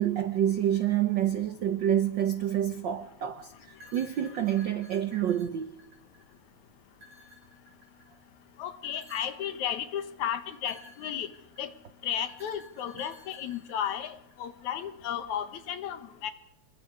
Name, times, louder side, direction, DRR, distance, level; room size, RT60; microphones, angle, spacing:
voice 1, 0.0-5.7, right 10 dB, 90° right, 1.0 m, -28 dB
sound 1, 3.7-6.4 6.9-8.2 8.8-9.5 10.5-11.7 12.3-14.4, equal, 60° right, 5.7 m, -54 dB
voice 2, 8.6-11.3 11.6-11.7 12.0-16.3, left 9 dB, 80° left, 2.7 m, -34 dB
25.5 x 22.0 x 4.9 m
omnidirectional pair, 3.4 m